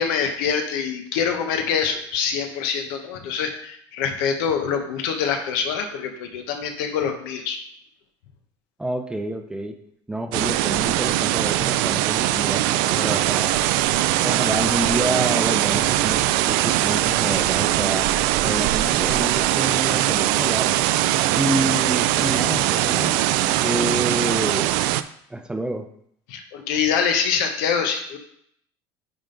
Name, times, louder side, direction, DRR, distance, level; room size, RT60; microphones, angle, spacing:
voice 1, 0.0-7.6 26.3-28.2, left 6 dB, 85° left, 5 dB, 1.0 m, -25 dB
voice 2, 8.8-9.8 10.1-13.5 14.2-18.1 18.4-20.8 21.3-24.7 25.3-25.9, right 1 dB, 5° right, 6 dB, 0.6 m, -28 dB
sound 1, 10.3-25.0, right 14 dB, 80° right, 0.4 m, -21 dB
9.8 x 3.6 x 3.9 m, 0.69 s
cardioid pair, 130°, 11 cm